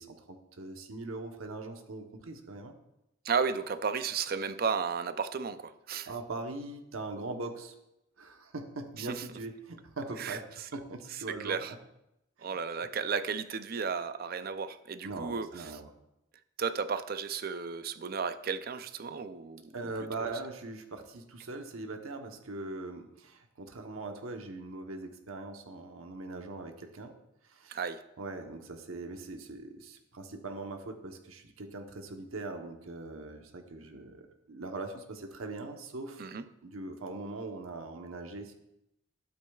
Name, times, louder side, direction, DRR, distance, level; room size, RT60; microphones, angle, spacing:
voice 1, 0.0-2.7 6.1-7.7 8.2-10.4 10.7-11.7 12.4-12.6 15.0-15.9 19.7-27.1 27.4-27.8 28.2-36.3 36.6-38.5, right 2 dB, 90° right, 4 dB, 1.0 m, -41 dB
voice 2, 3.2-6.1 9.0-9.2 10.2-10.4 11.3-11.7 12.4-15.5 16.6-19.9 27.7-28.0 36.2-36.5, right 5 dB, 45° right, 12 dB, 0.4 m, -33 dB
12.0 x 8.5 x 2.4 m, 0.86 s
head